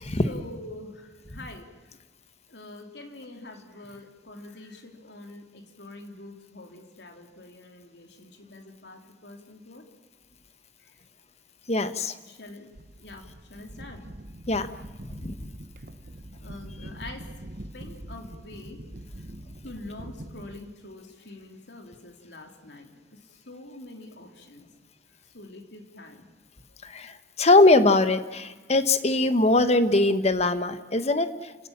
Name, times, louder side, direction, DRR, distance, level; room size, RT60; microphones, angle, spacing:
voice 1, 0.2-2.0 2.5-9.9 10.8-11.0 12.2-14.1 16.4-17.3 17.7-18.8 19.2-19.3 19.6-24.7 25.3-26.3, left 2 dB, 80° left, 4 dB, 3.4 m, -45 dB
voice 2, 11.7-12.2 14.5-14.7 15.0-15.4 26.8-31.7, left 2 dB, 40° left, 11 dB, 1.3 m, -22 dB
sound 1, 12.7-20.6, right 1 dB, 50° right, 1.2 m, -43 dB
29.5 x 17.5 x 7.4 m, 1.3 s
head